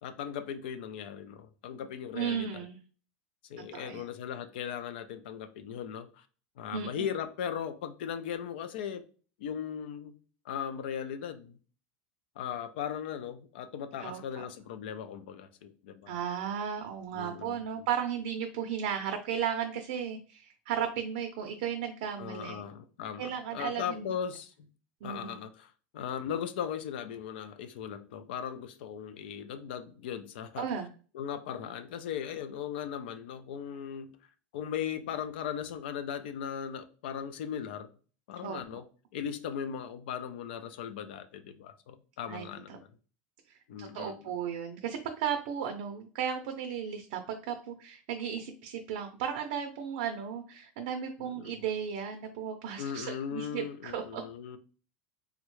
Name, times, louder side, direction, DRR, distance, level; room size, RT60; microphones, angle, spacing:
voice 1, 0.0-2.7 3.5-6.3 6.6-9.0 9.4-10.2 10.4-11.6 12.4-16.2 17.1-17.9 22.2-24.7 25.0-30.7 31.1-34.1 34.5-37.9 38.3-38.8 39.1-42.9 43.7-44.3 51.2-51.6 52.8-54.6, left 8 dB, 80° left, 0.4 m, -38 dB
voice 2, 2.1-2.8 3.7-4.1 6.7-7.1 14.0-14.4 16.1-22.6 23.2-24.1 25.0-25.4 30.6-30.9 38.4-38.6 42.3-42.8 43.5-54.2, right 8 dB, 60° right, 0.5 m, -35 dB
3.5 x 2.1 x 3.1 m
supercardioid pair, 175°, 5 cm